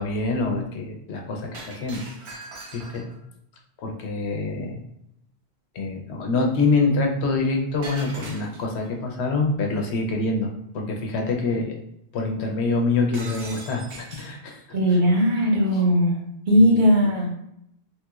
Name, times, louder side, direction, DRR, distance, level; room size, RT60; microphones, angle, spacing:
voice 1, 0.0-2.0 2.3-2.4 2.7-3.1 3.8-4.8 5.7-11.7 12.1-15.0 15.7-15.8 16.5-16.8, left 3 dB, 90° left, 2 dB, 0.9 m, -26 dB
Shatter, 1.5-3.2 7.8-8.9 13.1-14.4, right 2 dB, 85° right, 1.1 m, -40 dB
voice 2, 14.7-16.1 16.5-17.3, equal, 55° right, -1 dB, 0.8 m, -18 dB
3.1 x 2.9 x 2.3 m, 0.77 s
omnidirectional pair, 1.1 m